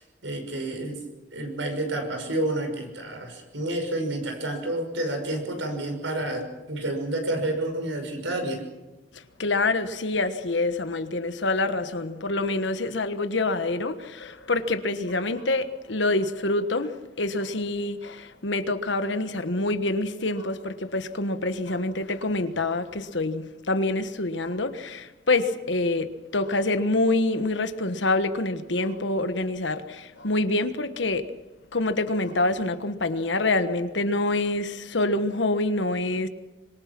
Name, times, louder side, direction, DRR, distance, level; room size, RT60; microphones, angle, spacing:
voice 1, 0.2-1.0 1.3-8.6, right 1 dB, 80° right, 6.0 m, -29 dB
voice 2, 9.1-31.3 31.7-36.3, left 2 dB, 75° left, 1.3 m, -26 dB
25.5 x 23.0 x 6.0 m
head